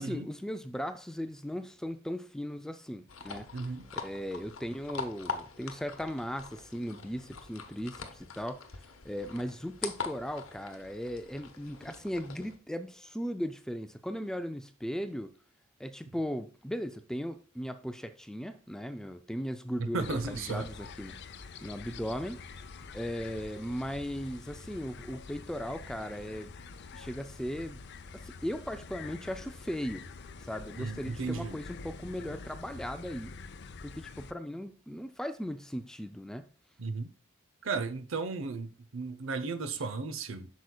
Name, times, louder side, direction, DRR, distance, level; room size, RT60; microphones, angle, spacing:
voice 1, 0.0-3.5 4.0-15.3 15.8-21.2 21.6-22.4 22.9-26.5 26.9-27.8 28.1-30.0 30.4-33.3 33.8-36.5, equal, 5° left, 0.3 m, -37 dB
sound 1, 3.1-12.6, left 5 dB, 75° left, 0.9 m, -43 dB
voice 2, 3.5-3.9 19.8-20.7 30.8-31.6 36.8-37.1 37.6-40.5, right 4 dB, 65° right, 0.7 m, -35 dB
sound 2, 20.0-34.3, left 4 dB, 55° left, 0.5 m, -46 dB
8.2 x 6.2 x 2.3 m
head